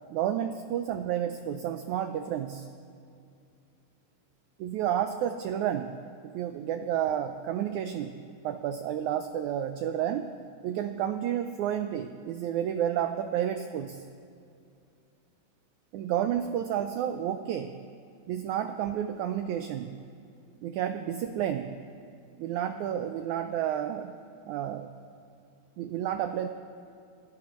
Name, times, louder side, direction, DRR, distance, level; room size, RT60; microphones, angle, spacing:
voice 1, 0.1-2.7 4.6-6.0 6.2-10.3 10.6-14.0 15.9-17.8 18.3-20.0 20.6-21.8 22.4-24.1 24.5-24.9 25.8-26.5, right 10 dB, 85° right, 8 dB, 1.7 m, -31 dB
27.5 x 16.5 x 3.1 m, 2.4 s
omnidirectional pair, 4.0 m